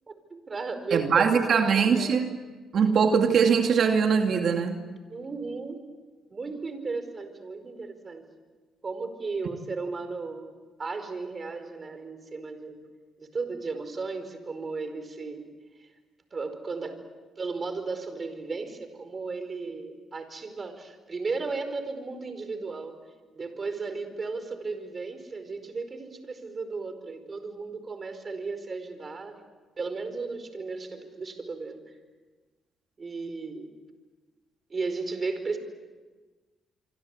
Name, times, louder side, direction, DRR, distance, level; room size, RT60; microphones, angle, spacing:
voice 1, 0.1-2.1 5.1-5.8 6.3-8.3 8.8-10.5 10.8-12.8 13.2-15.5 16.3-17.0 17.4-23.0 23.3-29.3 29.8-31.8 33.0-33.7 34.7-35.6, right 4 dB, 35° right, 9 dB, 4.8 m, -35 dB
voice 2, 0.9-2.4 2.7-4.8, right 6 dB, 60° right, 4 dB, 2.3 m, -22 dB
27.0 x 24.5 x 8.3 m, 1.3 s
cardioid pair, 90°, 0 cm